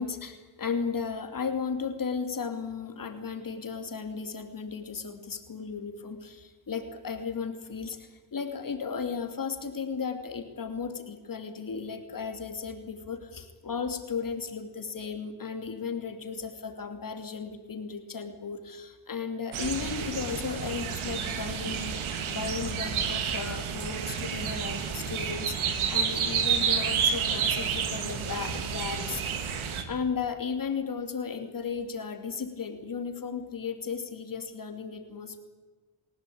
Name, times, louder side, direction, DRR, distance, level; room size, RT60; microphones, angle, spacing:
voice 1, 0.0-35.4, left 5 dB, 45° left, 6 dB, 3.0 m, -35 dB
sound 1, 19.5-29.8, right 7 dB, 90° right, 3.0 m, -30 dB
29.0 x 16.5 x 8.7 m, 1.3 s
cardioid pair, 90°, 47 cm